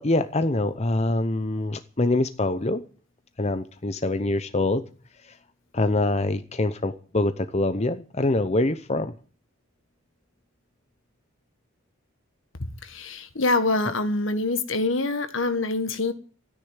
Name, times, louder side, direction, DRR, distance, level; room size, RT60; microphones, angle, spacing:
voice 1, 0.0-2.8 3.4-4.9 5.2-5.4 5.7-9.1, left 2 dB, 35° left, 0.8 m, -25 dB
voice 2, 12.8-16.1, left 2 dB, 70° left, 1.6 m, -25 dB
13.5 x 10.0 x 8.9 m
head